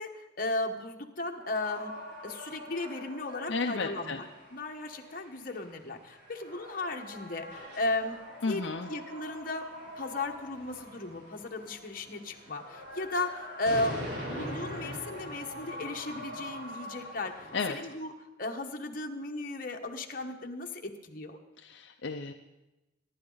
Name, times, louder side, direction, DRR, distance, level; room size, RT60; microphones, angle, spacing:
voice 1, 0.0-2.0 2.2-4.3 4.5-8.2 8.5-9.6 10.0-18.1 18.4-21.4, left 2 dB, 45° left, 3 dB, 1.3 m, -35 dB
sound 1, 1.3-17.9, equal, 65° right, 5.8 m, -43 dB
voice 2, 3.5-4.2 8.4-8.9 17.5-17.8 21.6-22.3, left 4 dB, 65° left, 4 dB, 0.6 m, -33 dB
23.5 x 11.0 x 4.0 m, 1.0 s
head